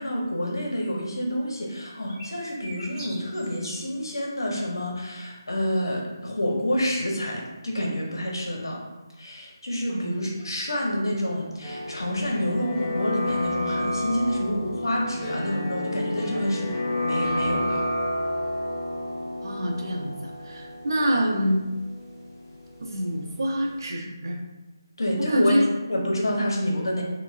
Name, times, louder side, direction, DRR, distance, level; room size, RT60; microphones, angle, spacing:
voice 1, 0.0-8.8 9.2-16.7 16.9-17.8 25.0-27.0, equal, 85° left, -1 dB, 0.8 m, -28 dB
sound 1, 2.1-3.8, right 1 dB, 5° right, 0.9 m, -42 dB
sound 2, 11.6-23.3 23.6-23.7, left 1 dB, 10° left, 0.5 m, -30 dB
voice 2, 19.4-21.6 22.8-24.4 25.2-25.7 26.4-26.5, equal, 65° right, 1 dB, 0.6 m, -26 dB
3.7 x 2.1 x 2.4 m, 1.1 s
figure-of-eight pair, 165°, 2 cm